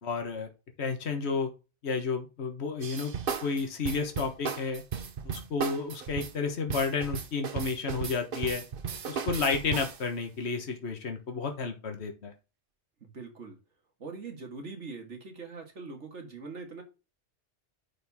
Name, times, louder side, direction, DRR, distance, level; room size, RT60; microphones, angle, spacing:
voice 1, 0.0-0.5 0.8-1.5 1.8-3.1 3.4-4.8 5.2-8.6 9.1-12.3, left 4 dB, 65° left, 1.6 m, -31 dB
sound 1, 2.8-10.0, right 6 dB, 50° right, 1.0 m, -35 dB
voice 2, 13.0-13.6 14.0-16.8, right 4 dB, 80° right, 2.3 m, -42 dB
10.0 x 4.6 x 3.6 m
omnidirectional pair, 1.2 m